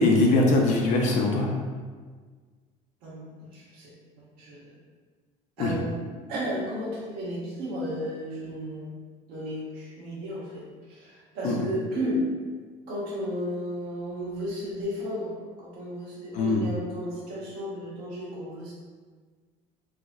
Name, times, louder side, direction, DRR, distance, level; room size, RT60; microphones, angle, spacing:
voice 1, 0.0-1.5 5.6-5.7 11.4-11.5 16.3-16.6, left 2 dB, 50° left, 0 dB, 0.4 m, -21 dB
voice 2, 3.0-4.7 5.6-8.9 9.3-12.2 12.9-18.7, equal, 80° right, -6 dB, 1.1 m, -34 dB
4.7 x 2.0 x 2.4 m, 1.5 s
cardioid pair, 155°, 15 cm